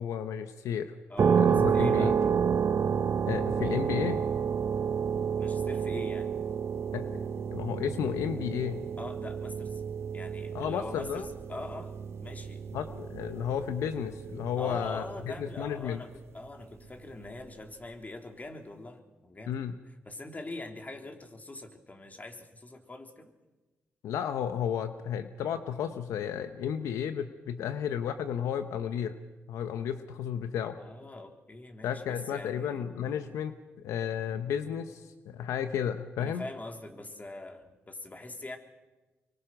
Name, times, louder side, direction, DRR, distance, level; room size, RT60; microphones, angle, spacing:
voice 1, 0.0-0.9 1.4-2.2 3.3-4.2 6.9-7.2 7.5-8.8 10.5-11.2 12.7-16.0 19.5-19.7 24.0-29.2 29.5-30.8 31.8-36.4, left 8 dB, 85° left, 9 dB, 1.0 m, -33 dB
voice 2, 1.1-2.2 5.4-6.3 9.0-9.8 10.1-11.9 12.2-12.6 14.6-19.6 20.0-23.3 30.8-32.8 36.2-38.6, left 2 dB, 30° left, 4 dB, 3.8 m, -43 dB
sound 1, 1.2-15.8, right 7 dB, 60° right, 1.4 m, -30 dB
25.0 x 23.5 x 6.1 m, 1.2 s
supercardioid pair, 50°, 5 cm